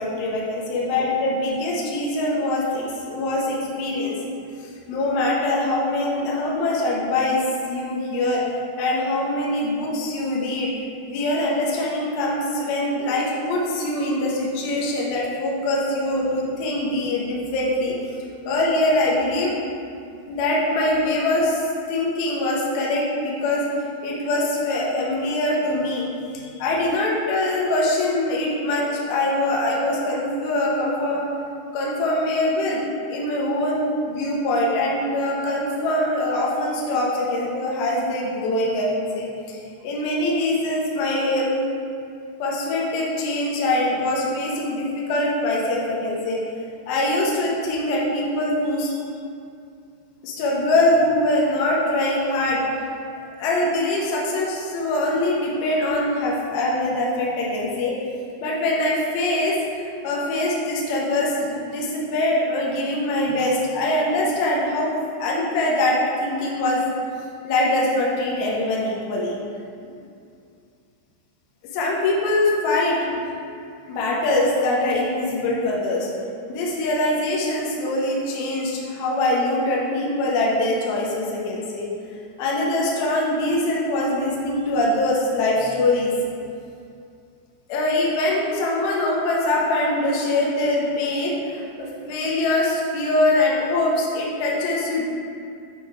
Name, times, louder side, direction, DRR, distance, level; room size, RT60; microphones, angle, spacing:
voice 1, 0.0-4.2 4.9-8.4 8.8-10.7 11.1-18.0 18.5-19.5 20.3-23.6 24.0-26.1 26.3-31.2 31.7-32.8 33.1-39.6 39.8-41.5 42.4-46.4 46.9-48.9 50.2-52.6 53.4-57.9 58.4-64.9 65.2-66.8 67.4-69.4 71.7-73.3 73.9-76.1 76.5-81.9 82.4-86.2 87.7-91.7 92.0-95.0, left 1 dB, 85° left, -4 dB, 2.1 m, -23 dB
8.4 x 3.1 x 4.6 m, 2.4 s
omnidirectional pair, 5.6 m